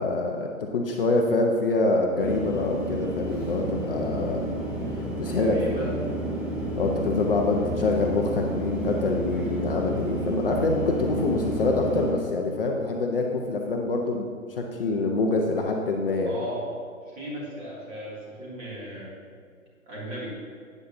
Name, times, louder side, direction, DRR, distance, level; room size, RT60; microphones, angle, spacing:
voice 1, 0.0-4.4 5.2-5.8 6.8-16.3, left 3 dB, 40° left, 1 dB, 0.9 m, -25 dB
sound 1, 2.2-12.1, right 1 dB, ahead, 1.1 m, -31 dB
voice 2, 5.2-5.9 16.3-16.6 17.1-19.2 19.9-20.3, equal, 20° right, -6 dB, 2.6 m, -36 dB
12.5 x 9.5 x 2.7 m, 2.2 s
figure-of-eight pair, 135°, 42 cm